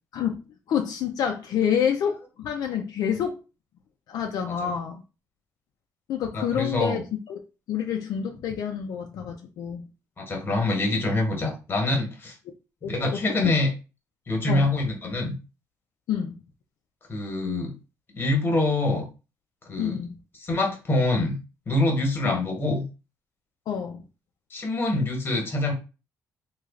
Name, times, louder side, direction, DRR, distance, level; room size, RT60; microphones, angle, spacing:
voice 1, 0.7-3.4 4.1-5.0 6.1-7.0 7.3-7.4 7.7-9.9 12.8-13.2 13.4-13.5 14.5-14.7 16.1-16.4 19.8-20.2 22.2-22.3 23.7-24.0, left 8 dB, 70° left, 3 dB, 0.5 m, -28 dB
voice 2, 6.3-7.0 10.2-12.3 12.8-13.7 14.3-15.3 17.1-17.7 18.1-19.0 19.7-20.0 20.4-21.4 21.7-22.8 24.5-25.7, left 2 dB, 30° left, 2 dB, 1.2 m, -25 dB
3.2 x 2.4 x 3.6 m, 0.31 s
cardioid pair, 125°, 7 cm